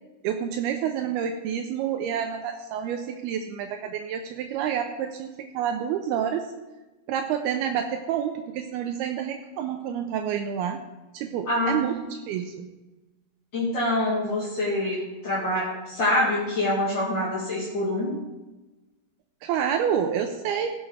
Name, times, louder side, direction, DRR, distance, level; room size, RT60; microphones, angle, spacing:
voice 1, 0.2-6.5 7.1-10.8 11.1-12.7 19.4-20.7, right 8 dB, 80° right, 5 dB, 2.5 m, -28 dB
voice 2, 11.4-11.8 13.5-18.2, left 1 dB, 40° left, -7 dB, 1.7 m, -25 dB
16.5 x 7.7 x 3.3 m, 1.1 s
omnidirectional pair, 4.8 m